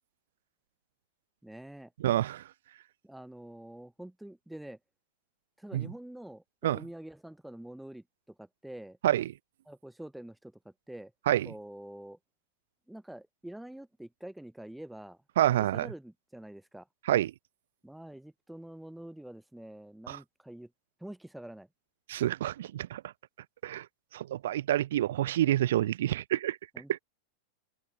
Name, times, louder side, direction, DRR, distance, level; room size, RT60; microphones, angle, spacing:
voice 1, 1.4-1.9 3.0-4.8 5.6-8.0 8.4-9.0 9.7-11.1 11.4-12.2 12.9-15.2 15.6-16.9 17.8-20.7 21.0-21.7 26.7-27.0, right 1 dB, 5° right, 5.6 m, -46 dB
voice 2, 2.0-2.4 5.7-5.9 6.6-6.8 9.0-9.3 11.3-11.5 15.4-15.9 17.1-17.3 20.1-20.2 22.1-23.0 23.6-23.9 24.1-26.6 26.9-27.0, right 13 dB, 60° right, 0.4 m, -28 dB
figure-of-eight pair, 90°, 0 cm